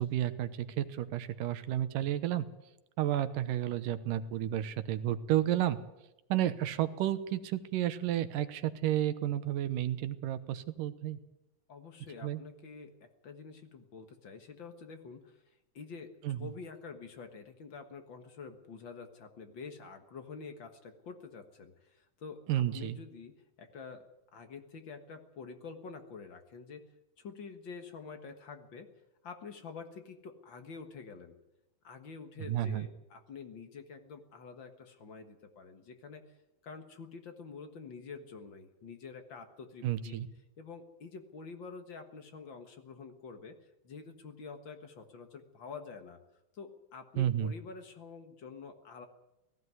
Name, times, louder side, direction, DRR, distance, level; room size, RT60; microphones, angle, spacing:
voice 1, 0.0-2.5 3.0-5.8 6.3-11.2 12.2-12.4 16.2-16.5 22.5-23.0 32.4-32.9 39.8-40.3 47.2-47.5, right 12 dB, 80° right, 12 dB, 2.6 m, -31 dB
voice 2, 11.7-15.4 15.7-23.3 23.6-24.0 24.3-26.8 27.2-28.9 29.2-31.4 31.8-36.2 36.6-40.2 40.6-46.2 46.5-49.1, left 5 dB, 45° left, 7 dB, 1.7 m, -47 dB
18.0 x 15.0 x 9.5 m, 0.94 s
omnidirectional pair, 3.9 m